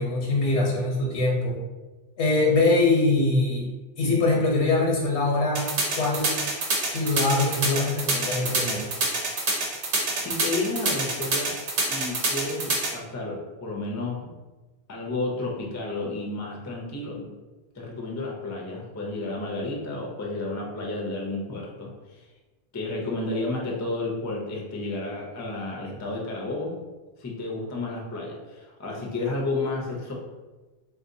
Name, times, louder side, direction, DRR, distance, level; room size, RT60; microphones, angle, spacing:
voice 1, 0.0-1.6 2.2-3.7 4.0-5.6 6.0-6.3 6.8-8.9, left 2 dB, 80° left, -2 dB, 1.1 m, -23 dB
sound 1, 5.6-12.9, right 3 dB, 80° right, 1.0 m, -25 dB
voice 2, 10.2-11.6 11.9-14.3 14.9-17.3 17.7-22.3 22.7-26.8 27.2-30.1, left 2 dB, 25° left, -1 dB, 0.3 m, -31 dB
3.6 x 2.7 x 2.6 m, 1.2 s
omnidirectional pair, 1.1 m